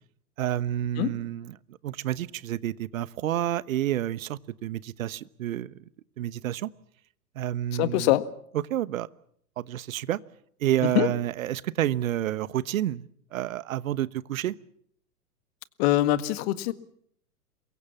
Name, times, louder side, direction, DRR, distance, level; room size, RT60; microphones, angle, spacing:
voice 1, 0.4-1.6 1.8-5.8 6.2-6.7 7.3-8.2 8.5-9.1 9.6-10.2 10.6-13.0 13.3-14.5, right 12 dB, 55° right, 19 dB, 1.2 m, -29 dB
voice 2, 7.8-8.3 11.0-11.1 15.8-16.7, left 15 dB, 40° left, 14 dB, 1.7 m, -23 dB
28.0 x 23.0 x 7.3 m, 0.66 s
figure-of-eight pair, 105°, 47 cm